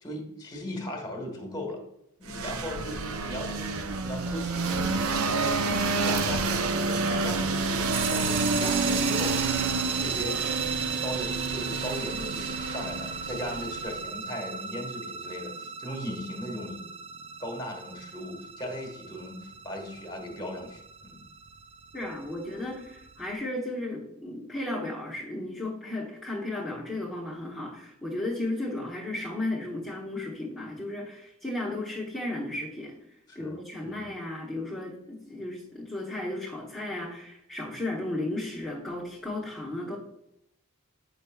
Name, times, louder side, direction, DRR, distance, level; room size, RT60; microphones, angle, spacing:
voice 1, 0.0-1.8 2.2-9.4 10.0-10.4 11.0-16.8 17.4-21.2 33.3-33.6 33.8-34.1, left 1 dB, 20° left, 2 dB, 1.5 m, -38 dB
sound 1, 2.3-14.0, right 3 dB, 65° right, 0.6 m, -29 dB
sound 2, 7.9-23.3, right 6 dB, 25° right, 0.3 m, -36 dB
voice 2, 21.9-32.9 33.3-40.0, left 1 dB, ahead, -8 dB, 1.1 m, -34 dB
8.3 x 5.6 x 2.3 m, 0.81 s
head